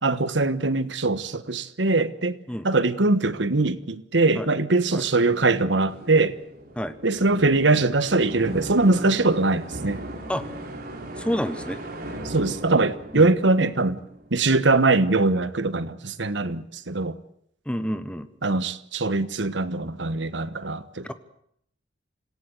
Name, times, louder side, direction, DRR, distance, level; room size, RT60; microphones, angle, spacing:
voice 1, 0.0-2.4 2.6-6.4 7.0-10.0 12.2-14.0 14.3-17.2 18.4-21.1, right 3 dB, 75° right, 1.3 m, -22 dB
sound 1, 5.9-14.7, right 1 dB, 55° right, 4.0 m, -38 dB
voice 2, 11.2-11.8 13.1-13.2 17.6-18.3 21.0-21.1, equal, 5° left, 1.3 m, -28 dB
26.5 x 17.0 x 8.2 m
head